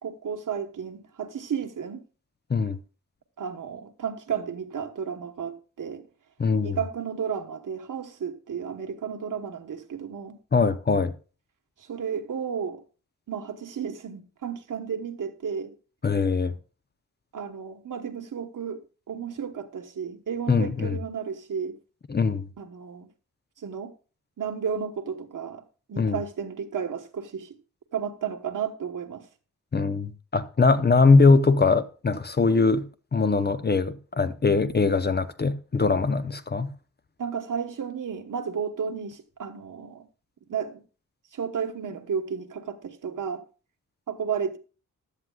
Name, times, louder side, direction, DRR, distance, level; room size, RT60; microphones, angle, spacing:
voice 1, 0.0-2.0 3.4-6.0 6.6-10.4 11.8-12.8 13.3-15.7 17.3-18.8 19.1-21.8 22.6-23.1 23.6-23.9 24.4-25.6 25.9-27.5 27.9-29.3 37.2-40.0 40.5-40.8 41.3-43.4 44.1-44.6, right 7 dB, 70° right, 1.2 m, -33 dB
voice 2, 6.4-6.8 10.5-11.1 16.0-16.5 20.5-21.0 22.1-22.5 26.0-26.2 29.7-32.9 33.1-36.7, left 4 dB, 30° left, 0.6 m, -21 dB
15.5 x 11.0 x 2.3 m
wide cardioid pair, 145°, 32 cm